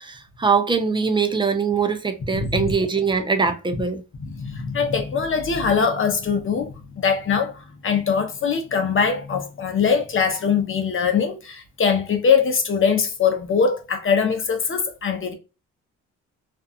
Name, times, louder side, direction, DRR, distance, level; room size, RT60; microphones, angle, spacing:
voice 1, 0.0-4.0, right 5 dB, 15° right, 0.6 m, -22 dB
voice 2, 2.3-2.7 4.3-15.3, left 6 dB, 45° left, 0.8 m, -22 dB
2.6 x 2.4 x 2.4 m
cardioid pair, 90°, 30 cm